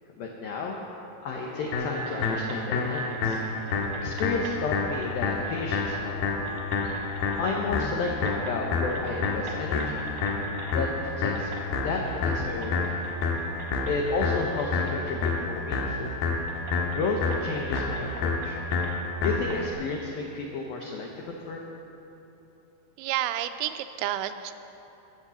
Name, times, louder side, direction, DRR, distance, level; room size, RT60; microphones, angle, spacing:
voice 1, 0.2-0.8 1.2-3.4 4.0-6.2 7.4-10.1 10.7-10.9 11.2-11.5 11.8-13.0 13.9-16.2 16.9-18.6 19.2-21.6, left 3 dB, 90° left, 0 dB, 2.0 m, -32 dB
sound 1, 1.3-17.5, left 1 dB, 30° left, 2.0 m, -46 dB
sound 2, 1.7-19.7, left 4 dB, 70° left, 2.5 m, -29 dB
sound 3, 2.0-4.6 4.9-6.1 6.5-7.9 8.2-8.6 8.9-10.8 11.3-15.4 15.7-15.8 16.5-19.6, right 4 dB, 65° right, 1.9 m, -45 dB
voice 2, 23.0-24.5, right 12 dB, 85° right, 10 dB, 3.0 m, -30 dB
15.5 x 7.4 x 7.0 m, 2.9 s
omnidirectional pair, 5.5 m